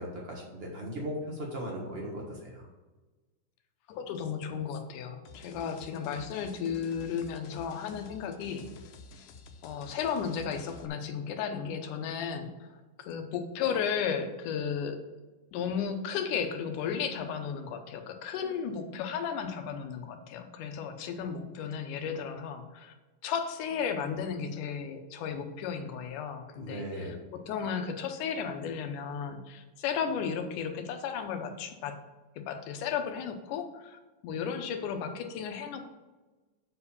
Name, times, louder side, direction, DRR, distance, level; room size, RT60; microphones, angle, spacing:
voice 1, 0.0-2.7 26.6-27.1, equal, 65° right, -2 dB, 0.6 m, -38 dB
voice 2, 3.9-8.7 9.6-15.0 15.5-22.9 23.2-32.0 32.4-35.9, left 7 dB, 75° left, 6 dB, 2.3 m, -34 dB
sound 1, 5.3-10.9, left 4 dB, 90° left, 2.5 m, -50 dB
7.8 x 4.7 x 7.0 m, 1.2 s
omnidirectional pair, 3.9 m